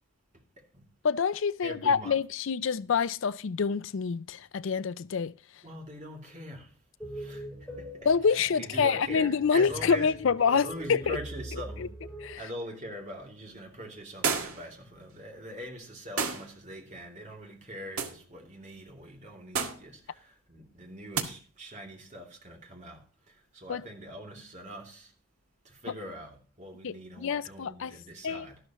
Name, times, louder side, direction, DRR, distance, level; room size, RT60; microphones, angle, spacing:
voice 1, 1.0-5.3 8.0-11.2 11.8-11.9 12.2-12.5 23.7-23.8 26.8-27.9 28.2-28.5, left 6 dB, 60° left, 0.4 m, -27 dB
voice 2, 1.6-2.1 5.6-6.7 7.1-7.5 7.8-8.1 8.3-10.1 10.5-11.9 12.4-25.1 25.6-28.6, equal, 35° right, 2.8 m, -43 dB
sound 1, 7.0-12.3, right 1 dB, 5° left, 5.4 m, -43 dB
sound 2, 14.2-14.7 16.2-16.5 18.0-18.2 19.5-19.9 21.1-21.3, right 5 dB, 80° right, 1.9 m, -30 dB
13.0 x 12.0 x 3.0 m
head